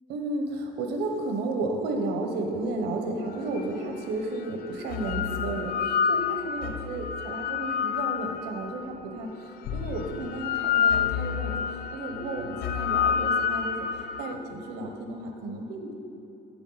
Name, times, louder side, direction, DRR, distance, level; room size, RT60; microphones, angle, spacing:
voice 1, 0.1-11.6 11.9-16.0, right 2 dB, 85° right, 3 dB, 1.0 m, -33 dB
sound 1, 3.6-3.7 4.6-8.9 9.7-14.3, left 7 dB, 60° left, 0.4 m, -28 dB
8.1 x 8.1 x 4.0 m, 2.8 s
cardioid pair, 110°, 17 cm